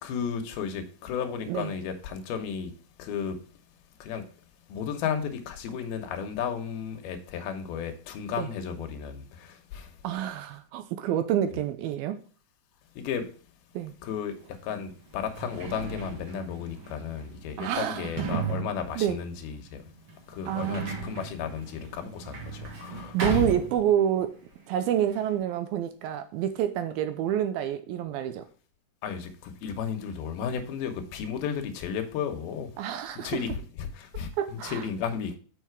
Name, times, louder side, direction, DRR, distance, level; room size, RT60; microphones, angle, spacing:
voice 1, 0.0-2.7 3.0-3.4 4.0-4.2 4.7-9.9 12.9-13.3 14.0-19.8 20.3-23.5 29.0-35.4, left 7 dB, 75° left, 2.8 m, -34 dB
voice 2, 10.0-12.2 13.7-13.9 17.6-18.4 19.0-19.2 20.5-21.0 23.1-24.4 24.7-28.4 32.8-33.4 34.4-34.8, right 10 dB, 80° right, 2.3 m, -28 dB
Sliding door, 14.4-14.5 15.1-24.3 24.5-25.4, right 4 dB, 55° right, 1.5 m, -37 dB
7.2 x 5.8 x 4.6 m
omnidirectional pair, 4.6 m